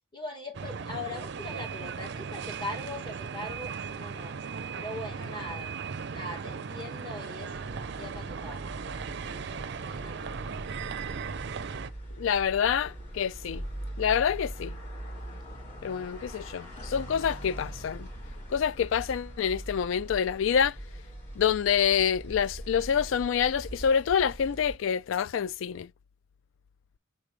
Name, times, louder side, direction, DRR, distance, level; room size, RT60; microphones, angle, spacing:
voice 1, 0.1-4.3 4.7-5.7 6.1-10.5, left 2 dB, 25° left, 2.3 m, -41 dB
sound 1, 0.5-11.9, right 5 dB, 55° right, 0.5 m, -37 dB
sound 2, 7.5-24.8, right 1 dB, 40° left, 3.5 m, -42 dB
voice 2, 12.2-13.7 14.0-14.7 15.8-18.1 18.5-20.8 21.4-25.9, left 7 dB, 70° left, 0.3 m, -27 dB
6.8 x 4.9 x 3.2 m
head